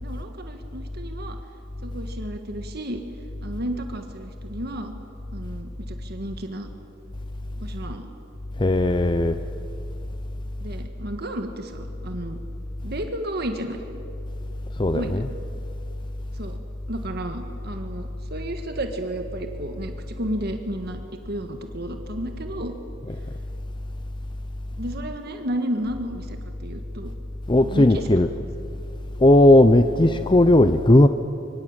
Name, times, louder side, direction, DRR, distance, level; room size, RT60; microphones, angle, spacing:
voice 1, 0.0-1.4 1.8-3.0 3.4-4.9 5.3-6.7 7.6-8.1 10.6-12.4 12.8-13.8 14.9-15.2 16.3-16.6 16.9-22.7 24.8-27.2 27.6-28.0 30.0-30.2, right 1 dB, 55° right, 1.7 m, -32 dB
voice 2, 8.6-9.4 14.8-15.3 23.1-23.2 27.5-28.3 29.2-31.1, left 1 dB, 25° left, 0.7 m, -16 dB
25.0 x 23.5 x 9.0 m
head